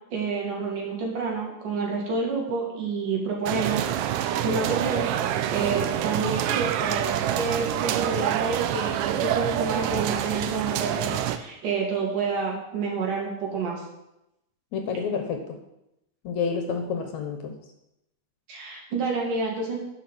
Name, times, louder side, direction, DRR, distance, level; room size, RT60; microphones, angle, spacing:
voice 1, 0.1-3.9 4.4-13.8 18.5-19.8, right 4 dB, 70° right, -1 dB, 4.0 m, -29 dB
sound 1, 3.5-11.4, right 11 dB, 90° right, 2.3 m, -27 dB
voice 2, 14.7-15.6 16.2-17.6, left 5 dB, 65° left, 5 dB, 2.2 m, -29 dB
10.0 x 7.0 x 7.4 m, 0.87 s
omnidirectional pair, 3.9 m